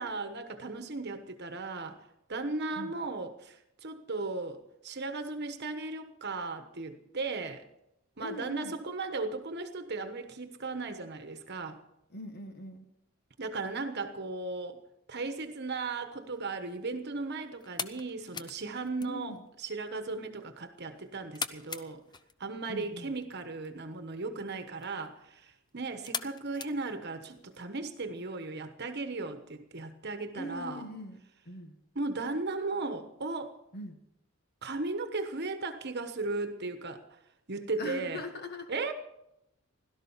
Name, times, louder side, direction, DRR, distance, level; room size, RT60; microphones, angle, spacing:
voice 1, 0.0-2.0 2.3-7.6 8.2-11.8 13.4-14.8 15.1-22.0 22.4-30.8 31.9-33.5 34.6-37.2 37.5-38.2 38.7-38.9, right 3 dB, 55° right, 8 dB, 1.2 m, -36 dB
voice 2, 8.2-8.8 12.1-12.9 19.0-19.4 22.7-23.1 30.4-31.2 31.4-31.8 33.7-34.0 37.8-38.7, left 1 dB, 50° left, 6 dB, 1.5 m, -41 dB
sound 1, 16.2-27.6, left 6 dB, 20° left, 0.6 m, -45 dB
17.0 x 12.5 x 5.7 m, 0.83 s
head